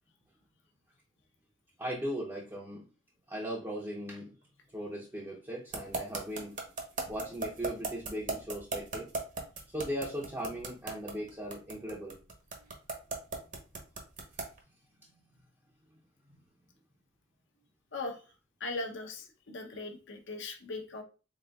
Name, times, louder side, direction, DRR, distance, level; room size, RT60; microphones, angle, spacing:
voice 1, 1.8-2.8 3.3-4.3 4.7-6.6 7.1-9.1 9.7-12.2 14.3-14.4 15.0-15.1 16.3-16.4, equal, 10° right, -5 dB, 0.6 m, -38 dB
sound 1, 5.7-14.6, right 3 dB, 40° right, 0.8 m, -36 dB
voice 2, 18.6-21.0, left 3 dB, 60° left, 3 dB, 0.7 m, -39 dB
3.9 x 3.7 x 2.2 m, 0.34 s
head